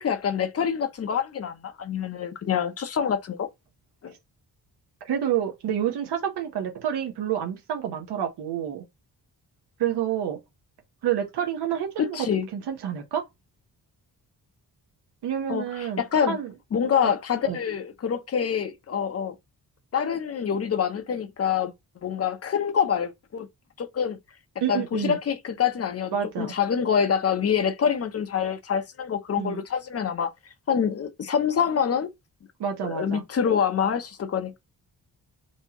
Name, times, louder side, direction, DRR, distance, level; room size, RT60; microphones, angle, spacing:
voice 1, 0.0-3.5 4.0-4.1 12.0-12.5 15.5-16.4 16.7-19.3 19.9-21.7 22.0-23.5 23.8-24.2 24.7-30.3 30.7-32.1 32.8-34.6, left 7 dB, 40° left, 0.6 m, -26 dB
voice 2, 5.0-8.8 9.8-10.4 11.0-12.2 12.5-13.2 15.2-16.5 17.5-17.6 24.6-25.2 26.1-26.5 29.4-29.6 32.6-33.2, right 9 dB, 90° right, 0.9 m, -28 dB
4.5 x 2.8 x 2.8 m
wide cardioid pair, 175°, 39 cm